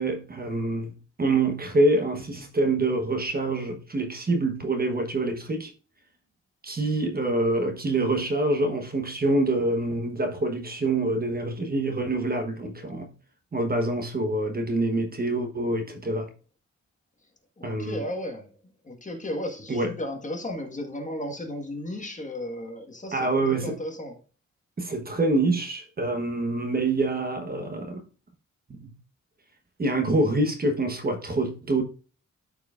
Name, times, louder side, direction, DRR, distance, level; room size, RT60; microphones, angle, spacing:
voice 1, 0.0-5.7 6.6-13.1 13.5-16.3 17.6-18.0 19.7-19.9 23.1-23.8 24.8-28.0 28.7-28.9 29.8-31.8, right 2 dB, 30° right, 1.1 m, -26 dB
voice 2, 17.6-18.5 18.8-24.2, left 1 dB, 25° left, 1.5 m, -34 dB
13.0 x 4.7 x 2.4 m
wide cardioid pair, 150°, 29 cm